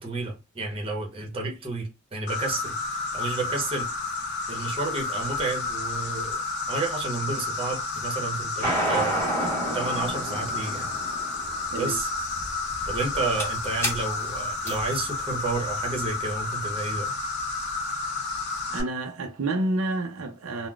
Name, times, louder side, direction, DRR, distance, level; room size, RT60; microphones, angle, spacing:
voice 1, 0.0-3.9 4.5-9.2 9.7-10.9 11.7-12.1 12.9-17.1, right 3 dB, 25° right, 0.8 m, -31 dB
Insect, 2.3-18.8, left 3 dB, 50° left, 0.7 m, -31 dB
sound 1, 8.6-16.1, right 1 dB, 10° left, 1.1 m, -30 dB
voice 2, 18.7-20.7, right 2 dB, 65° right, 0.5 m, -29 dB
3.7 x 2.1 x 2.3 m
head